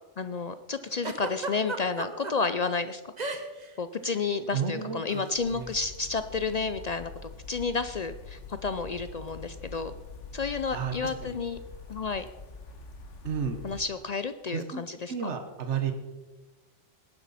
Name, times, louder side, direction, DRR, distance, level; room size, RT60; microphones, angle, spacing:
voice 1, 0.2-3.0 3.8-7.1 7.5-9.9 10.3-11.6 11.9-12.3 13.6-15.3, left 4 dB, 55° left, 11 dB, 0.5 m, -31 dB
Giggle, 1.0-2.3 3.2-3.7 3.9-4.2 5.1-5.3, right 3 dB, 40° right, 1.2 m, -34 dB
voice 2, 4.5-5.0 5.5-5.7 10.7-10.9 13.2-13.6 14.5-14.8 15.1-15.9, right 7 dB, 75° right, 7 dB, 1.4 m, -31 dB
sound 1, 5.3-13.8, left 4 dB, 85° left, 1.5 m, -45 dB
18.5 x 10.5 x 4.2 m, 1.2 s
omnidirectional pair, 1.2 m